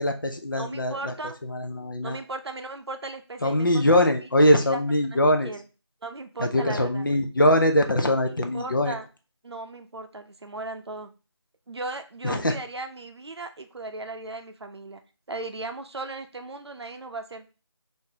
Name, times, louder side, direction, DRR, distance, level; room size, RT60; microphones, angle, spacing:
voice 1, 0.0-1.1 1.4-2.2 3.4-5.5 6.4-8.9 12.2-12.6, left 1 dB, 45° left, 5 dB, 0.5 m, -22 dB
voice 2, 0.6-1.4 2.0-4.1 4.7-4.8 5.1-5.2 5.4-5.6 6.0-7.1 8.5-9.1 9.4-11.1 11.7-15.0 15.3-17.5, right 2 dB, 65° right, 6 dB, 0.6 m, -36 dB
2.8 x 2.6 x 3.7 m, 0.33 s
figure-of-eight pair, 175°, 15 cm